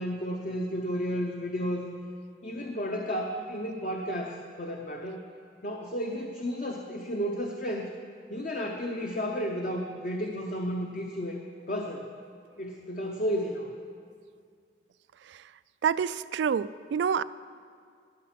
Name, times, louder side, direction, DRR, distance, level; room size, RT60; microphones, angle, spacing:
voice 1, 0.0-1.9 2.4-5.2 5.6-7.9 8.3-11.4 11.7-12.1 12.6-13.7, equal, 45° left, 1 dB, 0.7 m, -32 dB
voice 2, 15.8-17.2, right 7 dB, 80° right, 17 dB, 0.3 m, -27 dB
12.0 x 9.2 x 5.8 m, 2.2 s
head